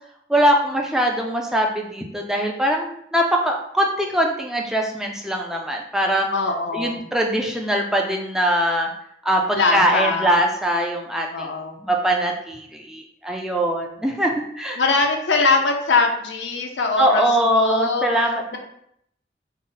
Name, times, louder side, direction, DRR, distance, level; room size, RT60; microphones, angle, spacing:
voice 1, 0.3-6.3 6.7-8.9 9.2-11.5 11.8-14.8 17.0-18.6, right 1 dB, 5° right, 0 dB, 0.3 m, -22 dB
voice 2, 6.3-7.0 9.5-10.3 11.3-11.8 14.8-18.6, left 3 dB, 90° left, 3 dB, 0.6 m, -22 dB
3.8 x 2.1 x 3.8 m, 0.73 s
head